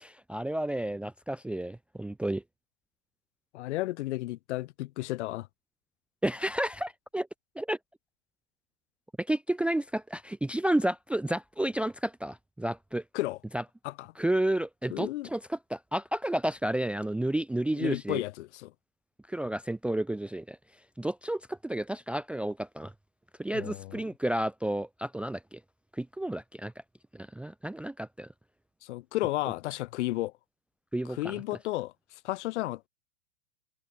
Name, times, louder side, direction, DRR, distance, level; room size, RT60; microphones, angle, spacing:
voice 1, 0.0-2.4 6.2-7.3 7.6-7.8 9.2-13.0 13.5-13.6 14.2-18.2 19.3-20.6 21.0-22.9 23.4-25.6 25.9-26.7 27.1-28.3 30.9-31.4, right 1 dB, 5° right, 0.8 m, -31 dB
voice 2, 3.5-5.5 13.1-13.4 13.8-14.1 14.9-15.3 17.8-18.7 23.5-24.0 28.8-30.3 31.1-31.9 32.2-32.9, left 17 dB, 55° left, 2.3 m, -33 dB
figure-of-eight pair, 100°, 43 cm